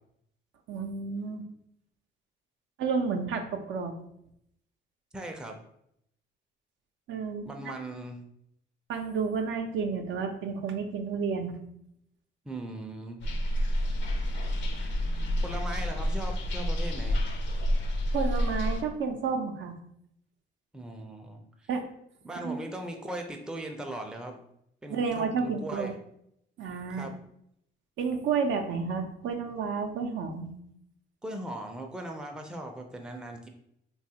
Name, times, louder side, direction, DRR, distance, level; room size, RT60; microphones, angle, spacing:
voice 1, 0.7-1.4 2.8-3.9 7.1-7.5 8.9-11.6 18.1-19.7 21.7-21.8 22.4-22.6 24.9-25.9 26.6-27.1 28.0-30.5, right 5 dB, 75° right, 5 dB, 0.5 m, -31 dB
voice 2, 5.1-5.6 7.4-8.2 12.4-13.2 15.4-17.2 20.7-21.7 22.2-24.4 24.8-25.9 26.9-27.1 31.2-33.5, right 1 dB, 5° right, 3 dB, 0.4 m, -39 dB
sound 1, 13.2-18.8, equal, 65° left, 0.5 m, -29 dB
3.2 x 2.3 x 2.7 m, 0.74 s
cardioid pair, 90°, 20 cm